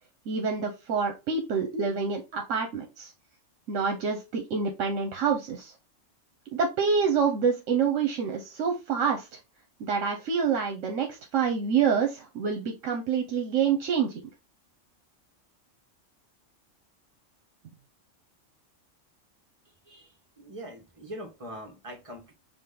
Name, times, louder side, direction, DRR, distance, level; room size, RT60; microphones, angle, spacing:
voice 1, 0.3-3.1 3.7-5.7 6.5-9.3 9.8-14.2, right 6 dB, 75° right, 1.1 m, -27 dB
voice 2, 20.4-22.3, equal, 25° right, 1.2 m, -42 dB
5.0 x 2.5 x 3.7 m
omnidirectional pair, 1.3 m